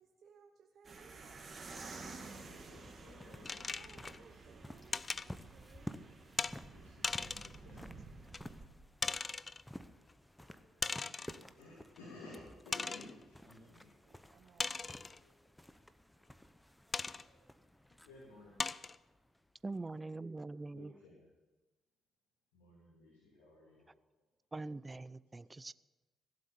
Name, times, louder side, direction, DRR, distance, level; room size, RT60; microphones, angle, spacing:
voice 1, 0.0-1.4 3.6-6.1 13.6-13.8 14.0-15.1, right 6 dB, 60° right, 5 dB, 0.8 m, -63 dB
sound 1, 0.8-8.7, right 3 dB, 40° right, 2.1 m, -52 dB
voice 2, 2.0-4.4 6.7-8.0 9.9-11.3 11.6-13.9 15.2-15.4 16.2-16.3 17.1-17.4 18.0-18.5 20.4-21.3 22.5-23.9 25.4-25.7, left 2 dB, 85° left, -5 dB, 3.0 m, -57 dB
sound 2, 2.2-19.6, left 1 dB, 10° left, 0.9 m, -54 dB
sound 3, 3.4-4.2 4.9-5.3 6.4-6.6 7.0-7.6 8.3-8.4 9.0-9.6 10.8-11.4 12.0-12.1 12.7-13.1 14.6-15.2 16.9-17.2 17.9-18.0 18.6-19.0, left 4 dB, 35° left, 0.4 m, -38 dB
voice 3, 19.6-20.9 24.5-25.7, right 3 dB, 25° right, 20 dB, 0.4 m, -43 dB
16.0 x 7.8 x 7.0 m, 1.2 s
hypercardioid pair, 50°, 0 cm